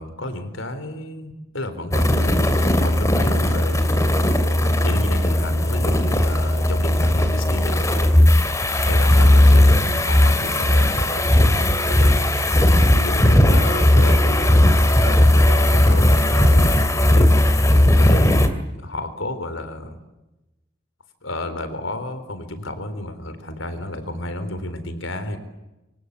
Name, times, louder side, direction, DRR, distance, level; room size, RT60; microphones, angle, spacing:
voice 1, 0.0-3.9 4.8-12.2 12.9-17.3 17.9-20.0 21.2-25.4, left 1 dB, 80° left, 10 dB, 4.1 m, -32 dB
sound 1, 1.9-18.5, left 1 dB, 15° left, 2.6 m, -16 dB
27.0 x 25.5 x 8.4 m, 1.0 s
head